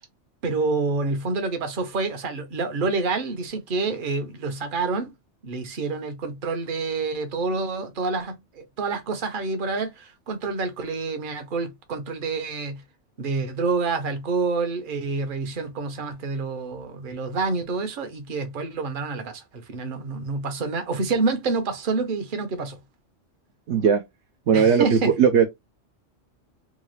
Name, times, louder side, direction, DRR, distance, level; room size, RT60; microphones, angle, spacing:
voice 1, 0.4-5.1 5.4-12.8 13.2-22.8 24.5-25.1, right 4 dB, 50° right, 0.9 m, -28 dB
voice 2, 23.7-24.0 24.5-25.5, right 7 dB, 70° right, 0.9 m, -18 dB
3.8 x 2.3 x 3.1 m
omnidirectional pair, 1.2 m